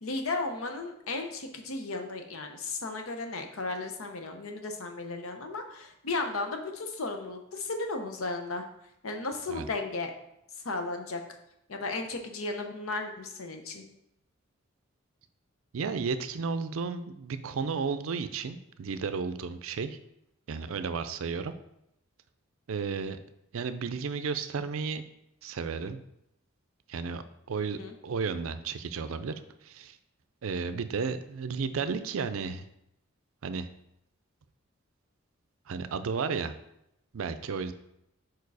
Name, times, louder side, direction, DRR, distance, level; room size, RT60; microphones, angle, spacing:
voice 1, 0.0-8.7 9.0-10.1 10.6-11.2 11.7-13.8 27.6-27.9, left 3 dB, 90° left, 5 dB, 0.8 m, -35 dB
voice 2, 15.7-20.0 20.5-21.5 22.7-23.2 23.5-25.1 25.4-26.0 26.9-27.2 27.5-27.8 28.0-29.3 29.6-30.0 30.4-32.7 33.4-33.7 35.7-36.5 37.1-37.7, right 5 dB, 75° right, 11 dB, 0.5 m, -33 dB
4.7 x 4.6 x 4.7 m, 0.81 s
head